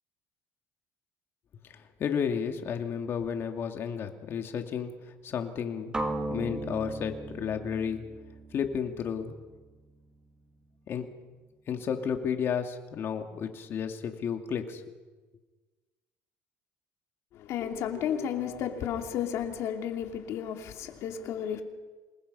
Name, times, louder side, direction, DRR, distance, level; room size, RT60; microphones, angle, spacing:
voice 1, 1.6-6.0 6.3-8.0 8.5-9.4 10.9-11.1 11.7-15.0, left 7 dB, 50° left, 2.5 m, -32 dB
sound 1, 5.9-9.9, right 2 dB, 15° right, 2.5 m, -37 dB
voice 2, 17.3-21.6, left 9 dB, 65° left, 2.8 m, -33 dB
27.0 x 21.0 x 5.6 m
cardioid pair, 110°, 5 cm